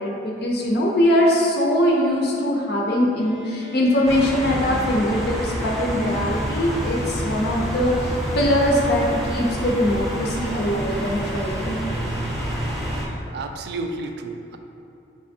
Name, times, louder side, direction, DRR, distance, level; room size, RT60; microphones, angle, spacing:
voice 1, 0.0-11.8, left 1 dB, 60° left, -2 dB, 0.5 m, -22 dB
Bowed string instrument, 3.2-6.9, right 2 dB, 85° right, 0.9 m, -43 dB
sound 1, 4.1-13.1, equal, ahead, 0.6 m, -28 dB
voice 2, 13.3-14.6, right 3 dB, 60° right, 5 dB, 0.3 m, -31 dB
5.4 x 3.3 x 2.6 m, 2.6 s
head